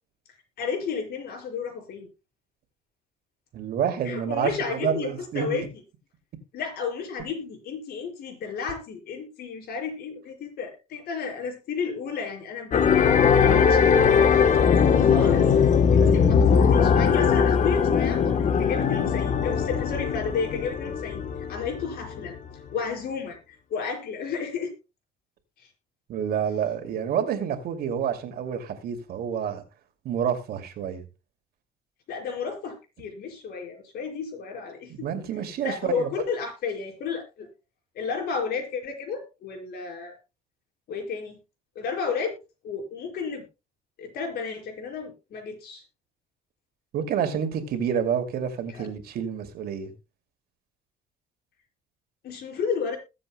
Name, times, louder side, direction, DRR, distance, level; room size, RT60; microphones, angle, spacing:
voice 1, 0.6-2.1 4.0-5.6 6.5-13.0 13.3-14.5 15.0-15.5 15.9-22.4 22.7-24.7 25.6-25.7 32.1-35.1 35.6-37.5 38.0-40.2 40.9-41.4 41.8-42.4 42.6-43.5 44.0-45.8 48.7-48.9 52.2-53.0, left 5 dB, 65° left, 5.5 m, -32 dB
voice 2, 3.5-5.7 14.5-14.6 16.0-16.3 26.1-29.6 30.0-31.0 34.9-36.1 46.9-49.9, right 8 dB, 65° right, 2.5 m, -28 dB
sound 1, 12.7-22.4, left 6 dB, 45° left, 1.1 m, -20 dB
21.0 x 7.7 x 2.2 m
cardioid pair, 110°, 17 cm